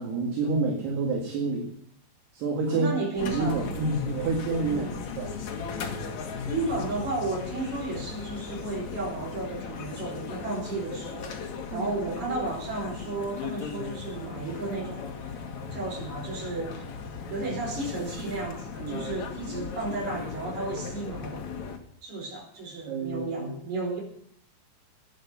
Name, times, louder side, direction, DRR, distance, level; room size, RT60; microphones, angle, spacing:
voice 1, 0.0-1.7 2.3-2.9 3.2-4.9 5.2-5.3 11.7-11.9 12.4-12.5 18.8-19.1 22.9-23.5, right 3 dB, 65° right, -1 dB, 4.0 m, -28 dB
voice 2, 2.7-3.7 4.7-5.0 6.5-11.4 11.7-15.3 15.7-16.8 17.3-21.5 22.0-24.0, right 2 dB, 40° right, -1 dB, 6.0 m, -33 dB
sound 1, 3.2-21.8, left 5 dB, 55° left, 2.1 m, -37 dB
15.0 x 11.0 x 6.8 m, 0.65 s
omnidirectional pair, 5.3 m